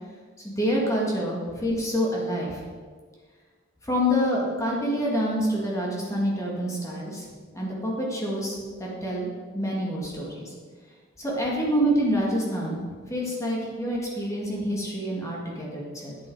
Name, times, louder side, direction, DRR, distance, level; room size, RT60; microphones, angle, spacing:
voice 1, 0.4-2.6 3.8-7.3 7.5-9.3 9.5-10.5 11.2-12.8 13.1-16.2, equal, 15° left, -4 dB, 2.0 m, -27 dB
8.9 x 7.3 x 4.7 m, 1.5 s
head